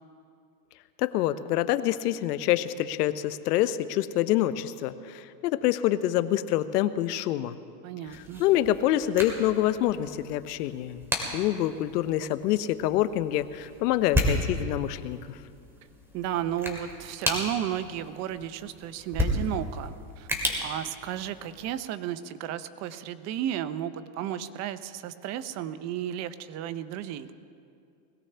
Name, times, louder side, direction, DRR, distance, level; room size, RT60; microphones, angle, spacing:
voice 1, 1.0-7.6 8.1-11.0 11.3-15.2, left 13 dB, 70° left, 13 dB, 0.9 m, -26 dB
voice 2, 7.8-8.4 16.1-20.3 20.6-27.3, right 11 dB, 35° right, 13 dB, 0.7 m, -33 dB
sound 1, 8.1-21.7, left 1 dB, 5° right, 2.4 m, -34 dB
21.5 x 16.5 x 3.4 m, 2.4 s
supercardioid pair, 130°, 49 cm